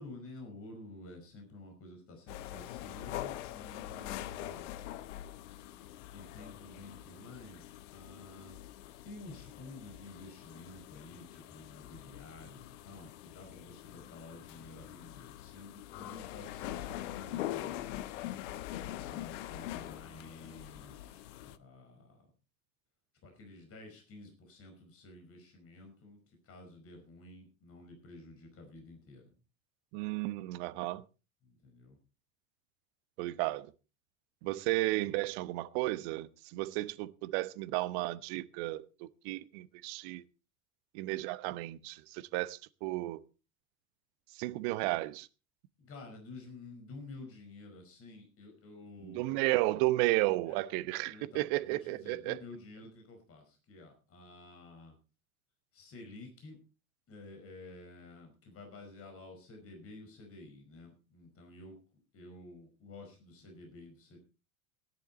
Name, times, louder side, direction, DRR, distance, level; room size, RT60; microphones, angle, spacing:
voice 1, 0.0-4.7 6.1-18.0 18.8-22.3 23.2-29.3 31.4-32.0 45.8-49.6 50.4-50.6 51.1-55.0 55.7-56.6 57.1-61.8 62.1-64.2, left 2 dB, 30° left, 5.2 m, -51 dB
sound 1, 2.3-21.6, left 13 dB, 55° left, 1.1 m, -44 dB
voice 2, 29.9-31.0 33.2-33.7 34.4-40.2 40.9-43.2 44.4-45.3 49.0-52.4, right 19 dB, 50° right, 1.0 m, -33 dB
17.0 x 11.0 x 4.2 m
figure-of-eight pair, 80°, 42 cm